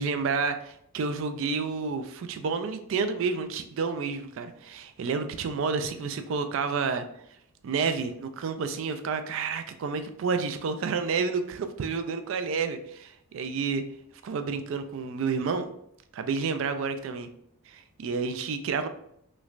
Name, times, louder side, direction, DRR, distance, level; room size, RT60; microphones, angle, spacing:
voice 1, 0.0-7.1 7.6-13.8 14.2-15.7 16.1-17.3 17.7-18.9, right 5 dB, 60° right, 8 dB, 0.3 m, -30 dB
3.1 x 3.1 x 2.4 m, 0.72 s
head